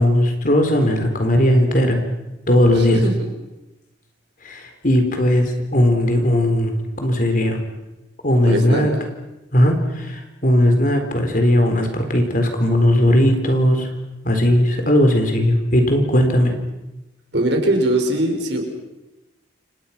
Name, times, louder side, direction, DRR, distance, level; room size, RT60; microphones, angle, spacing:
voice 1, 0.0-2.0 2.5-3.0 4.4-7.6 8.2-8.9 9.5-13.9 14.2-16.5, left 1 dB, 45° left, 5 dB, 4.2 m, -17 dB
voice 2, 8.4-8.9 17.3-18.6, right 1 dB, 60° right, 3 dB, 5.6 m, -20 dB
29.5 x 28.0 x 6.0 m, 0.98 s
head